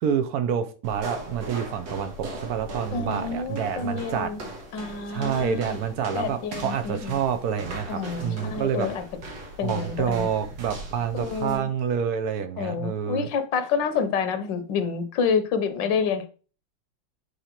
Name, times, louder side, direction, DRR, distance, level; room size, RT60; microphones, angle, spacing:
voice 1, 0.0-4.3 5.1-8.9 9.6-13.3, right 8 dB, 65° right, 1.1 m, -28 dB
sound 1, 0.8-11.6, right 2 dB, 80° right, 2.0 m, -39 dB
voice 2, 2.9-4.4 4.7-5.8 6.1-7.2 7.9-9.0 9.6-10.3 11.1-11.7 12.6-16.3, left 6 dB, 80° left, 1.5 m, -28 dB
7.9 x 4.2 x 2.9 m
omnidirectional pair, 1.9 m